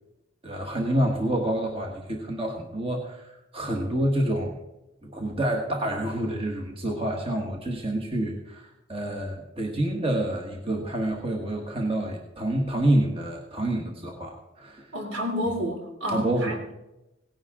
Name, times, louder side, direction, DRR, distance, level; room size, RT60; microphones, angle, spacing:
voice 1, 0.4-4.6 5.0-14.9 16.1-16.6, right 1 dB, 25° right, 1 dB, 1.4 m, -28 dB
voice 2, 14.9-16.7, equal, 65° right, 2 dB, 3.1 m, -30 dB
17.5 x 11.0 x 3.7 m, 0.95 s
head